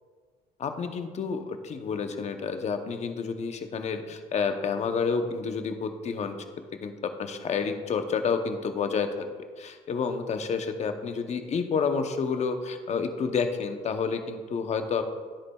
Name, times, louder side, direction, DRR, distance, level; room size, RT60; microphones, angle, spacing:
voice 1, 0.6-6.4 6.8-9.3 9.6-15.0, left 5 dB, 40° left, 7 dB, 0.8 m, -29 dB
10.0 x 8.6 x 2.3 m, 1.5 s
cardioid pair, 110°, 17 cm